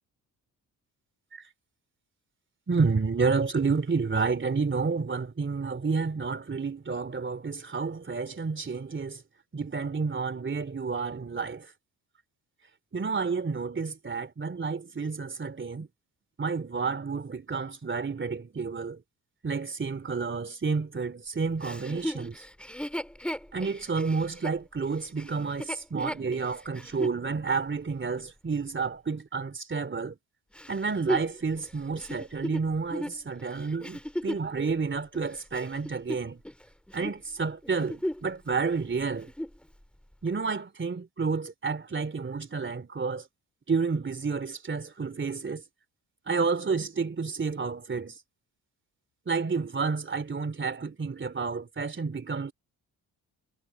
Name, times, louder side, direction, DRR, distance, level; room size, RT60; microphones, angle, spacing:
voice 1, 2.7-9.2 9.5-11.7 12.9-15.9 16.4-19.0 19.4-22.4 23.5-30.2 30.7-36.4 36.9-39.3 40.2-43.3 43.7-45.6 46.3-48.2 49.3-52.5, right 4 dB, 30° right, 2.9 m, -30 dB
Chuckle chortle, 21.6-27.2 27.8-27.9 30.5-34.5 35.1-36.6 36.9-37.2 37.6-38.3 38.6-38.7 39.1-39.6 40.3-40.4, equal, 5° left, 2.0 m, -36 dB
supercardioid pair, 65°, 38 cm